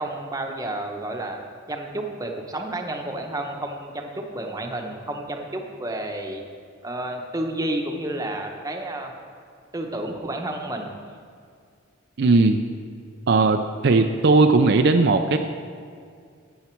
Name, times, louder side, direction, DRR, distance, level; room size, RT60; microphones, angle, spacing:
voice 1, 0.0-1.4 1.7-6.4 6.8-9.1 9.7-10.9, right 1 dB, 20° right, 3 dB, 0.9 m, -31 dB
voice 2, 12.2-12.6 13.3-15.4, right 3 dB, 60° right, 6 dB, 0.4 m, -18 dB
13.0 x 8.3 x 4.5 m, 2.2 s
head